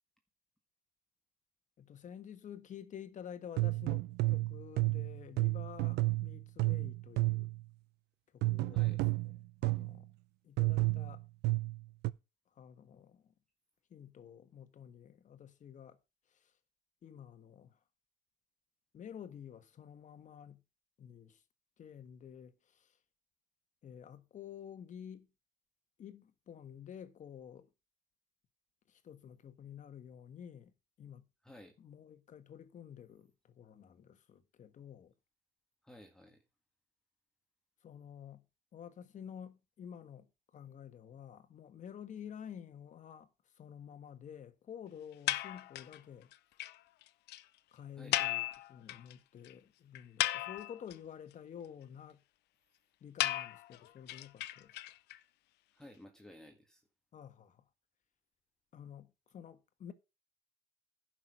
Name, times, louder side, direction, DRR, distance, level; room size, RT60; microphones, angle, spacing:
voice 1, 1.8-7.5 8.3-9.3 9.6-10.1 10.4-11.2 12.5-13.3 13.9-16.0 16.3-16.5 17.0-17.8 18.9-20.6 21.0-21.4 21.8-23.0 23.8-25.3 26.0-27.7 28.9-30.7 31.0-31.3 31.8-35.1 37.8-38.4 38.7-43.3 43.5-46.3 47.7-52.2 53.0-54.8 57.1-57.6 58.7-59.9, left 8 dB, 45° left, 1.4 m, -50 dB
sound 1, 3.6-7.6 8.4-10.0 10.6-12.1, right 20 dB, 85° right, 0.6 m, -32 dB
voice 2, 31.4-31.8 35.8-36.4 48.0-48.2 55.7-56.8, left 1 dB, 5° left, 1.8 m, -54 dB
sound 2, 45.3-46.0 46.3-46.4 46.6-46.7 47.0-47.1 47.3-47.4 48.1-49.1 49.4-49.5 49.9-50.9 53.2-55.2, left 15 dB, 80° left, 0.7 m, -35 dB
11.0 x 6.1 x 6.1 m
cardioid pair, 110°, 17 cm